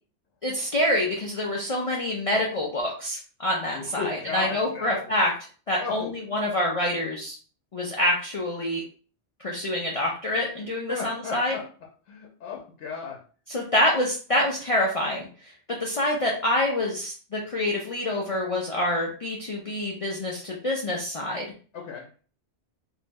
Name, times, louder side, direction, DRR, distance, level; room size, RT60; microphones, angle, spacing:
voice 1, 0.4-5.3 5.7-7.4 7.7-8.8 9.4-11.5 13.5-15.3 15.8-21.5, left 1 dB, 55° left, -2 dB, 0.3 m, -26 dB
voice 2, 3.7-5.1 5.7-6.1 10.9-11.6 12.1-13.2 21.7-22.2, left 6 dB, 90° left, -1 dB, 0.9 m, -35 dB
2.6 x 2.0 x 3.4 m, 0.40 s
omnidirectional pair, 1.1 m